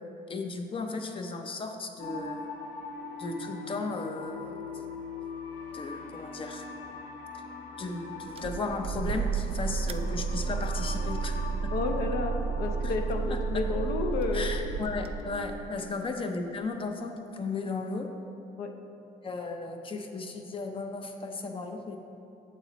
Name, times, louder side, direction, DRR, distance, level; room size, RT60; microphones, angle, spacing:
voice 1, 0.3-2.4 3.2-4.8 5.7-6.7 7.8-11.7 13.3-13.6 14.3-18.1 19.2-22.0, left 3 dB, 30° left, 5 dB, 0.7 m, -35 dB
sound 1, 2.0-15.6, left 3 dB, 45° left, 1.1 m, -42 dB
sound 2, 8.4-15.7, right 5 dB, 35° right, 0.4 m, -32 dB
voice 2, 11.7-14.5 18.6-18.7, left 3 dB, 65° left, 5 dB, 0.7 m, -31 dB
8.2 x 7.1 x 3.0 m, 2.7 s
cardioid pair, 110°, 17 cm